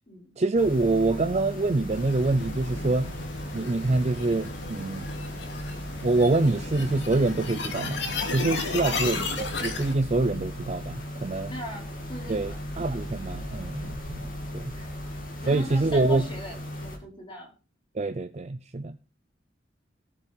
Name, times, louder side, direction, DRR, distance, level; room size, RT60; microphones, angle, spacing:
voice 1, 0.4-3.1 3.5-5.1 6.0-11.5 12.3-14.3 14.5-14.6 15.5-16.2 18.0-19.0, right 2 dB, 35° right, 0.5 m, -25 dB
sound 1, 0.5-17.0, equal, 50° left, 2.7 m, -37 dB
sound 2, 1.9-9.9, left 3 dB, 65° left, 2.6 m, -34 dB
voice 2, 11.5-11.8 12.1-12.6 14.7-14.9 15.4-17.5, left 1 dB, 25° left, 4.9 m, -39 dB
18.5 x 6.3 x 4.4 m
head